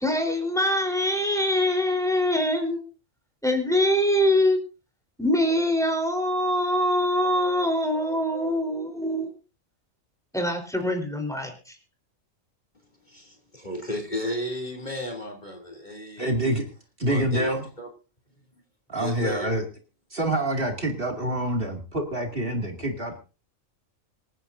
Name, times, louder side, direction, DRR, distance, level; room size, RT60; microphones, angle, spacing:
voice 1, 0.0-2.9 3.4-4.6 5.2-9.3 10.3-11.7, left 1 dB, ahead, 3.9 m, -24 dB
voice 2, 13.1-16.5 17.0-17.5 17.8-17.9 18.9-19.5, left 1 dB, 35° left, 3.0 m, -34 dB
voice 3, 16.2-16.6 17.0-17.7 18.9-19.6 20.1-23.2, right 1 dB, 45° right, 2.6 m, -26 dB
26.5 x 9.9 x 2.7 m
omnidirectional pair, 1.4 m